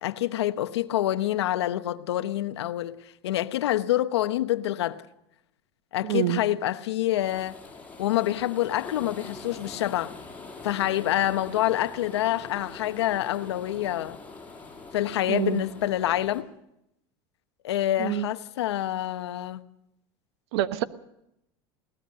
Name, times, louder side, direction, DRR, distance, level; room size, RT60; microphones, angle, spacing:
voice 1, 0.0-3.0 3.2-5.0 5.9-7.6 8.0-10.1 10.6-14.2 14.9-16.5 17.6-19.6, left 13 dB, 90° left, 1.0 m, -27 dB
voice 2, 6.0-6.4 15.3-15.7 18.0-18.3 20.5-20.8, right 13 dB, 75° right, 1.2 m, -26 dB
sound 1, 7.2-16.4, left 3 dB, 10° left, 5.7 m, -44 dB
22.0 x 18.5 x 6.6 m
supercardioid pair, 105°, 14 cm